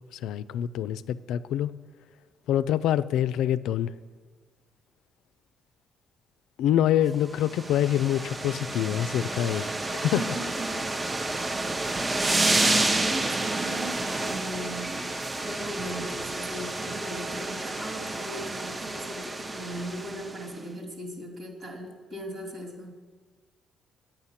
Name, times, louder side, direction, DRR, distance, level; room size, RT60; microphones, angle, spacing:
voice 1, 0.1-1.7 2.5-3.9 6.6-10.2, left 11 dB, 85° left, 15 dB, 0.3 m, -26 dB
sound 1, 7.3-20.5, right 2 dB, 25° right, 0.6 m, -30 dB
voice 2, 10.2-10.9 12.6-22.9, right 1 dB, 65° right, 1 dB, 2.8 m, -38 dB
9.6 x 9.0 x 5.7 m, 1.4 s
cardioid pair, 90°, 0 cm